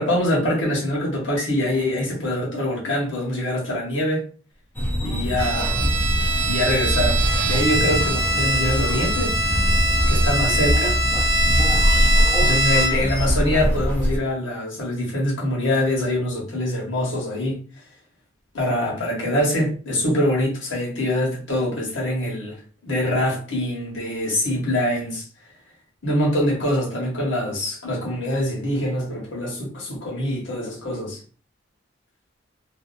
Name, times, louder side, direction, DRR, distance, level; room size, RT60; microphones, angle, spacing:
voice 1, 0.0-4.2 5.0-5.8 6.5-9.4 10.1-11.0 12.4-17.6 18.5-22.6 22.8-25.2 26.0-31.2, left 1 dB, 75° left, 1.3 m, -24 dB
sound 1, 4.7-14.2, equal, 10° left, 0.5 m, -22 dB
Bowed string instrument, 5.4-13.2, right 1 dB, 85° right, 0.7 m, -23 dB
2.6 x 2.4 x 2.6 m
head